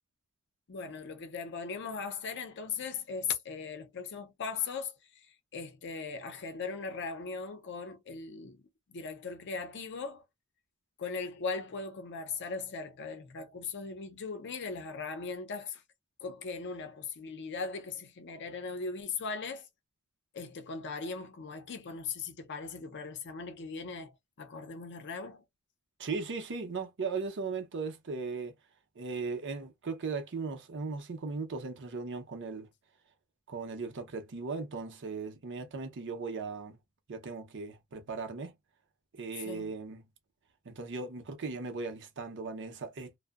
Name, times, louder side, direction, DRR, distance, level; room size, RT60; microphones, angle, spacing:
voice 1, 0.7-10.2 11.0-15.8 16.2-19.7 20.3-25.4 39.4-39.7, left 5 dB, 55° left, 0.5 m, -39 dB
voice 2, 26.0-28.5 29.0-32.7 33.5-36.8 37.1-38.5 39.2-40.0 40.6-43.2, right 4 dB, 55° right, 0.6 m, -37 dB
2.6 x 2.0 x 2.3 m
head